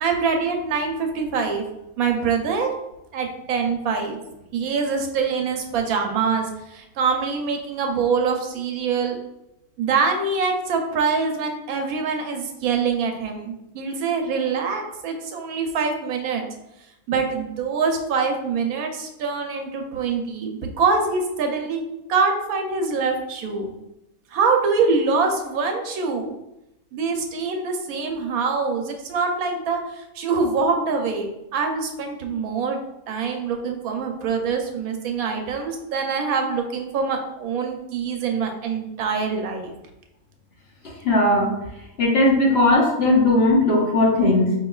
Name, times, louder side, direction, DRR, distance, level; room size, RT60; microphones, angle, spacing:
voice 1, 0.0-1.6 2.0-2.7 3.1-4.2 4.5-9.2 9.8-16.5 17.1-21.8 22.1-23.7 24.3-26.3 26.9-32.8 33.1-39.7, right 5 dB, 90° right, 3 dB, 1.1 m, -24 dB
voice 2, 41.0-41.5 42.0-44.5, left 2 dB, 50° left, -3 dB, 1.1 m, -17 dB
4.8 x 3.0 x 2.3 m, 0.89 s
omnidirectional pair, 1.5 m